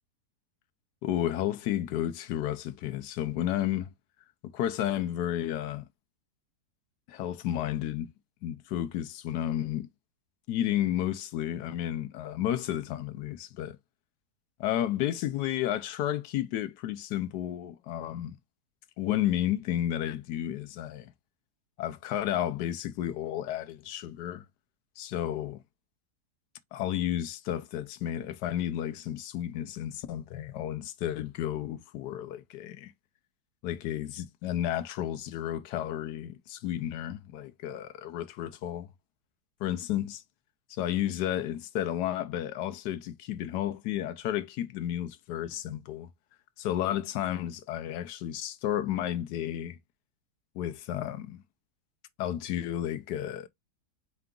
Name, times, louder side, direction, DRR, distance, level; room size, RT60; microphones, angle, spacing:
voice 1, 1.0-3.9 4.4-5.8 7.1-8.1 8.4-9.9 10.5-13.8 14.6-18.4 19.0-21.1 21.8-24.4 25.0-25.6 26.7-32.9 33.6-38.9 39.6-40.2 40.7-46.1 46.6-49.8 50.6-51.4 52.2-53.5, left 12 dB, 85° left, 1.2 m, -32 dB
4.8 x 2.3 x 3.6 m
omnidirectional pair, 1.8 m